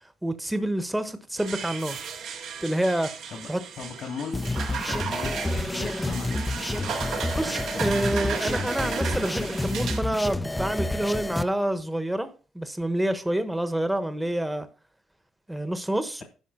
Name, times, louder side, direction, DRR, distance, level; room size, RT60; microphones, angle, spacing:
voice 1, 0.2-2.1 2.6-3.1 3.5-3.6 7.3-12.3 12.5-14.7 15.5-16.2, right 1 dB, 5° right, 1.2 m, -27 dB
sound 1, 1.4-10.0, right 7 dB, 80° right, 1.9 m, -35 dB
voice 2, 3.8-7.9, left 5 dB, 70° left, 2.5 m, -39 dB
sound 2, 4.3-11.4, left 2 dB, 10° left, 0.7 m, -29 dB
10.5 x 5.9 x 5.6 m
cardioid pair, 90°, 0 cm